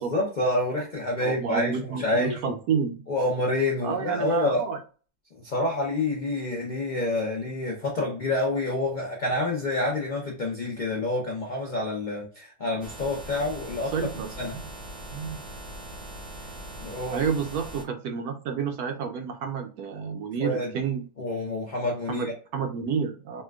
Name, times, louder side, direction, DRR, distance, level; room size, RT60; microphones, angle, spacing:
voice 1, 0.0-2.5 3.1-4.6 5.3-13.9 14.4-14.5 16.8-17.3 20.4-20.7 21.2-22.3, left 2 dB, 80° left, -3 dB, 0.4 m, -28 dB
voice 2, 1.2-3.0 3.8-4.8 13.9-14.7 15.1-15.4 17.1-21.1 22.1-23.4, right 6 dB, 70° right, 5 dB, 0.9 m, -30 dB
sound 1, 12.8-17.9, right 1 dB, 40° right, 0.6 m, -40 dB
4.2 x 2.2 x 2.3 m, 0.39 s
omnidirectional pair, 1.8 m